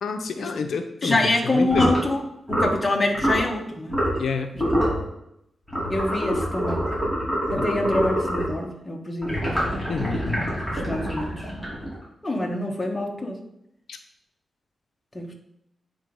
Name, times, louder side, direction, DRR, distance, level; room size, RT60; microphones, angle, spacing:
voice 1, 0.0-1.2 1.4-1.9 4.2-4.5 7.5-7.9 9.9-10.5 13.9-14.0, left 5 dB, 80° left, 6 dB, 0.6 m, -29 dB
voice 2, 1.0-2.2 2.5-4.0 4.5-4.7 5.9-6.8 7.5-9.5 10.7-11.5 12.2-13.4 15.1-15.3, left 2 dB, 15° left, 1 dB, 1.1 m, -26 dB
sound 1, 1.7-2.0 2.5-2.8 3.1-3.4 3.9-4.3 4.6-5.0 5.7-8.6 9.2-12.0, equal, 5° right, 3.0 m, -25 dB
8.8 x 3.8 x 5.3 m, 0.79 s
wide cardioid pair, 165°, 0 cm